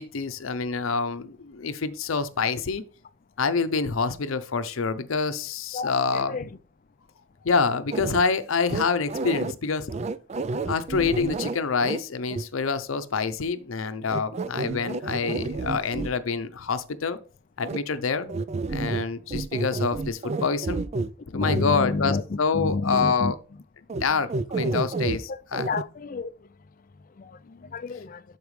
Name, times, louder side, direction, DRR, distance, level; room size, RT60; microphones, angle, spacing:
voice 1, 0.0-2.8 3.4-6.4 7.4-9.9 10.7-17.2 17.6-18.3 18.7-20.8 21.3-23.3 24.0-25.7 27.5-27.6, left 5 dB, 85° left, 0.6 m, -26 dB
voice 2, 5.7-6.6 21.3-23.3 24.1-24.2 24.6-24.8 25.3-25.4 25.7-26.3 27.2-27.4 27.7-28.2, left 3 dB, 40° left, 0.5 m, -30 dB
sound 1, 7.9-8.2 8.7-9.5 9.9-12.0 12.3-12.4 14.1-16.1 17.6-17.8 18.3-19.0 19.3-21.1 21.4-21.6 23.9-24.0 24.3-25.2 25.5-25.8, right 3 dB, 35° right, 0.4 m, -29 dB
12.0 x 4.6 x 3.2 m
head